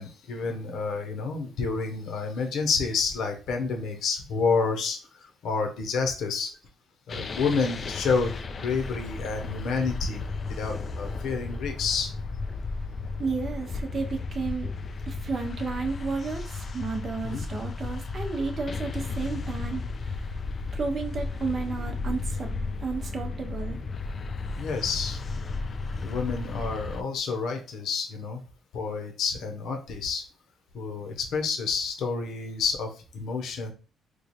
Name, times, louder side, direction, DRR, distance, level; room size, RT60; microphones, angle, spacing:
voice 1, 0.0-6.5 7.1-8.3 8.6-12.1 17.2-17.4 24.6-25.2 26.0-28.4 28.7-30.2 30.7-33.7, left 5 dB, 65° left, 4 dB, 0.8 m, -29 dB
sound 1, 7.1-27.0, left 3 dB, 35° left, 0.3 m, -34 dB
voice 2, 13.2-14.7 15.1-20.4 20.7-22.5 22.8-23.8, right 4 dB, 35° right, 3 dB, 0.7 m, -32 dB
3.1 x 2.3 x 4.1 m, 0.34 s
cardioid pair, 140°, 0 cm